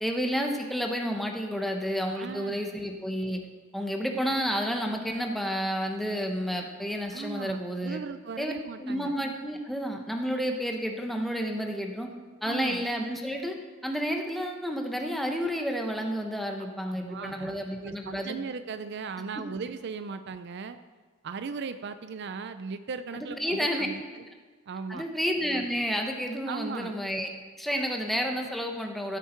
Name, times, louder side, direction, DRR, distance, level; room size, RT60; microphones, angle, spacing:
voice 1, 0.0-3.4 3.7-8.0 8.4-8.5 8.8-12.1 12.4-13.5 13.8-18.3 19.4-19.5 23.1-23.9 24.9-27.3 27.6-29.2, equal, ahead, 2 dB, 1.0 m, -30 dB
voice 2, 2.1-2.6 7.1-9.2 12.4-12.8 16.9-20.8 21.2-24.2 24.7-25.0 26.5-26.9, right 5 dB, 55° right, 11 dB, 0.4 m, -38 dB
15.5 x 8.4 x 4.5 m, 1.4 s
head